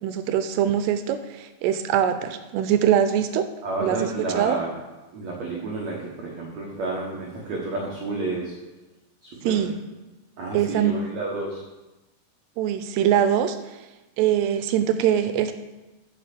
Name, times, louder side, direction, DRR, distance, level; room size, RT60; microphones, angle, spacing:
voice 1, 0.0-3.5 3.8-4.0 4.3-4.6 9.4-9.7 10.5-11.0 12.6-13.6 14.2-15.5, right 10 dB, 80° right, 9 dB, 2.6 m, -22 dB
voice 2, 3.6-4.7 5.1-8.5 9.2-9.5 10.4-11.6, right 2 dB, 60° right, -3 dB, 1.9 m, -30 dB
8.8 x 7.0 x 6.8 m, 1.1 s
omnidirectional pair, 4.9 m